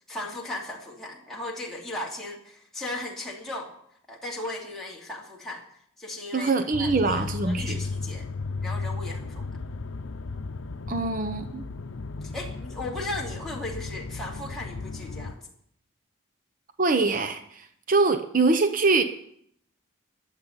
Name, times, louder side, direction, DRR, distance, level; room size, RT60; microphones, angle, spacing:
voice 1, 0.1-3.7 4.1-5.6 6.0-6.5 6.8-8.2 8.6-9.5 12.2-15.5, left 2 dB, ahead, -4 dB, 2.7 m, -36 dB
voice 2, 6.3-7.8 10.9-11.6 16.8-19.0, right 3 dB, 40° right, 8 dB, 0.8 m, -24 dB
sound 1, 6.7-15.3, left 3 dB, 80° left, 0.7 m, -35 dB
12.0 x 7.5 x 9.9 m, 0.69 s
head